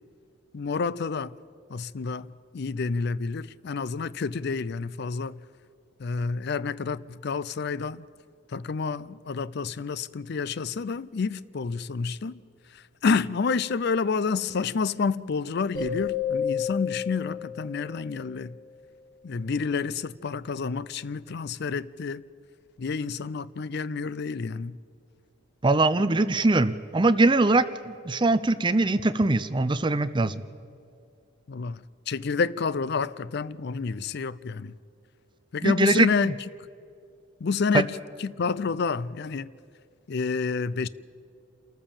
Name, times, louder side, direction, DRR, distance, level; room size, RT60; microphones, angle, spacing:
voice 1, 0.5-1.4 1.7-5.4 6.0-8.0 8.5-12.4 12.7-18.6 19.2-22.2 22.8-24.8 31.5-34.8 35.5-36.3 37.4-39.5 40.1-40.9, left 5 dB, 55° left, 0.5 m, -29 dB
sound 1, 15.7-18.4, left 7 dB, 70° left, 4.6 m, -31 dB
voice 2, 25.6-30.4 35.6-36.3 37.7-37.8, right 2 dB, 25° right, 0.6 m, -22 dB
27.5 x 14.0 x 7.3 m
head